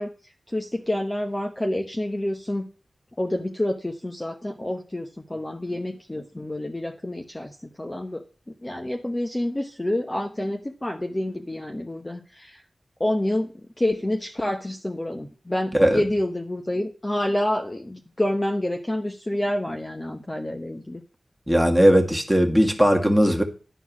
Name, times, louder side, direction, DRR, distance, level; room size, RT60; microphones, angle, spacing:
voice 1, 0.0-2.7 3.2-8.3 8.6-12.6 13.0-21.0, left 1 dB, 20° left, 1.0 m, -28 dB
voice 2, 21.5-23.4, equal, ahead, 1.9 m, -18 dB
11.5 x 4.5 x 7.2 m
wide cardioid pair, 80°, 0 cm